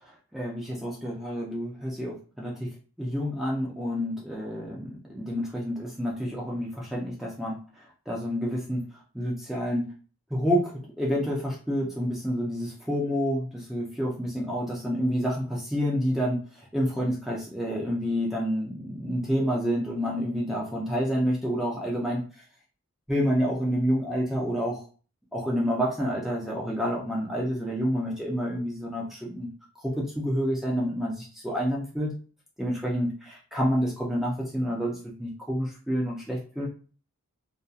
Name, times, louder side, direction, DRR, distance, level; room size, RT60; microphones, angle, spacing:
voice 1, 0.3-2.7 3.0-7.5 8.1-8.8 9.1-9.9 10.3-10.7 11.0-16.4 16.7-22.2 23.1-24.8 25.3-29.5 29.8-32.1 32.6-36.7, equal, ahead, -4 dB, 0.4 m, -28 dB
2.7 x 2.2 x 2.3 m, 0.38 s
head